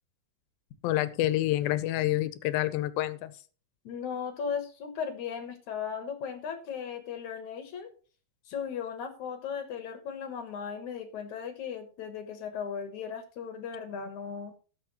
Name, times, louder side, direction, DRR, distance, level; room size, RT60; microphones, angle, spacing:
voice 1, 0.8-3.3, left 15 dB, 90° left, 14 dB, 2.5 m, -28 dB
voice 2, 3.8-7.9 8.5-14.5, left 7 dB, 65° left, 7 dB, 2.3 m, -37 dB
18.0 x 6.6 x 3.0 m, 0.39 s
omnidirectional pair, 4.1 m